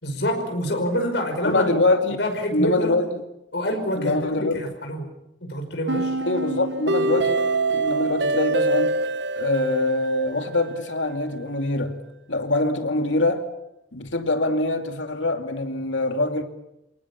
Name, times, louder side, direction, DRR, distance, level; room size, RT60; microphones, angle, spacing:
voice 1, 0.0-1.7 2.2-3.0 3.5-5.1 5.4-6.2, equal, 70° left, 5.5 m, -26 dB
voice 2, 1.4-2.2 2.5-3.1 4.0-4.6 6.2-7.4 7.7-8.9 9.4-12.0 12.3-13.5 13.9-16.4, left 2 dB, 85° left, 2.7 m, -24 dB
sound 1, 5.9-10.9, right 2 dB, 70° right, 1.2 m, -25 dB
29.5 x 19.0 x 7.3 m
head